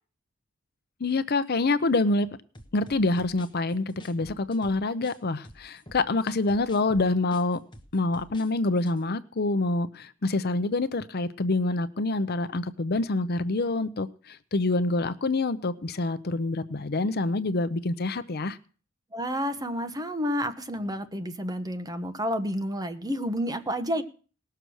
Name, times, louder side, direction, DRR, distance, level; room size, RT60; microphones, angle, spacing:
voice 1, 1.0-2.3 2.7-7.6 7.9-18.6, left 2 dB, 50° left, 13 dB, 0.7 m, -26 dB
sound 1, 2.5-5.2 5.4-8.5 8.8-9.0, equal, 25° left, 1.4 m, -48 dB
voice 2, 19.1-24.0, equal, 20° right, 7 dB, 1.1 m, -30 dB
19.0 x 6.8 x 6.3 m, 0.39 s
head